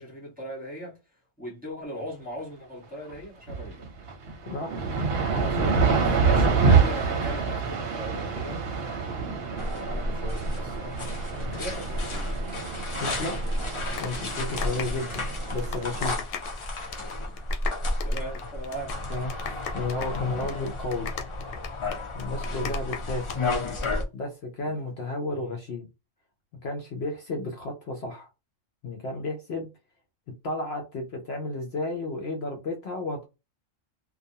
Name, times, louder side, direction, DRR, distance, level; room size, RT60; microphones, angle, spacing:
voice 1, 0.0-3.9 6.1-11.0 11.3-12.3 14.1-14.4 17.2-17.5 18.0-19.0 22.4-22.8 24.6-24.8 25.3-25.5, equal, 5° right, 1.1 m, -40 dB
sound 1, 3.1-3.2 3.5-16.1, right 5 dB, 60° right, 0.8 m, -27 dB
voice 2, 4.5-4.8 5.3-6.3 13.0-13.4 14.0-16.2 19.1-21.1 22.1-23.3 24.1-25.9 26.6-28.3 28.8-29.7 30.4-33.3, left 2 dB, 60° left, 0.8 m, -33 dB
sound 2, 9.6-24.0, left 2 dB, 40° left, 0.4 m, -32 dB
sound 3, 13.7-16.6 16.8-17.1 17.4-23.4 23.7-23.9, left 8 dB, 85° left, 0.9 m, -37 dB
2.4 x 2.2 x 2.7 m
omnidirectional pair, 1.3 m